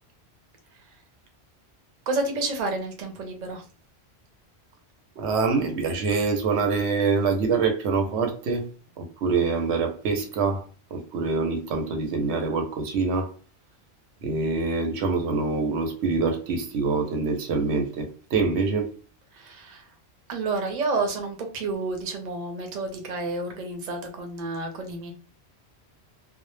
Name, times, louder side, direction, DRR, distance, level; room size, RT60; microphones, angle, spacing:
voice 1, 2.1-3.6 19.3-19.9 20.3-25.1, right 3 dB, 50° right, 0.7 m, -30 dB
voice 2, 5.2-8.7 9.0-10.6 10.9-13.3 14.2-18.9, right 4 dB, 90° right, 0.9 m, -25 dB
2.1 x 2.1 x 3.1 m
omnidirectional pair, 1.1 m